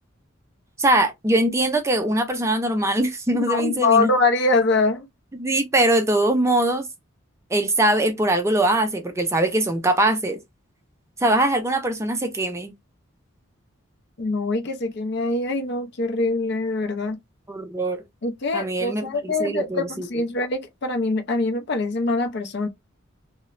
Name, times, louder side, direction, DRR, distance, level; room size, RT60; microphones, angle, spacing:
voice 1, 0.8-4.1 5.4-6.9 7.5-10.4 11.2-12.7 17.5-18.0 18.5-20.1, right 1 dB, 15° right, 0.3 m, -22 dB
voice 2, 3.3-5.1 14.2-17.2 18.2-22.7, left 3 dB, 55° left, 0.5 m, -23 dB
2.9 x 2.1 x 2.3 m
head